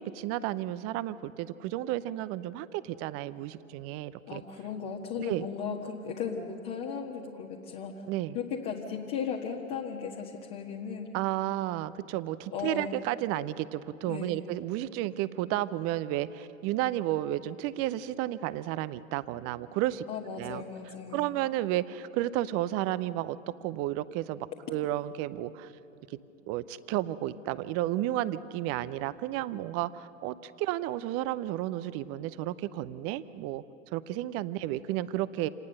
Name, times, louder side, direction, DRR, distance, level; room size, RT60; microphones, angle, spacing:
voice 1, 0.0-4.4 5.2-5.5 8.1-8.4 11.1-20.0 20.4-20.6 21.1-25.7 26.1-26.2 26.5-33.6 33.9-35.5, right 14 dB, 35° right, 16 dB, 0.7 m, -32 dB
voice 2, 4.3-8.0 8.3-11.1 12.5-12.9 14.0-14.4 20.1-21.3, left 6 dB, 40° left, -1 dB, 1.7 m, -36 dB
28.0 x 19.0 x 6.6 m, 2.8 s
figure-of-eight pair, 90°, 40 cm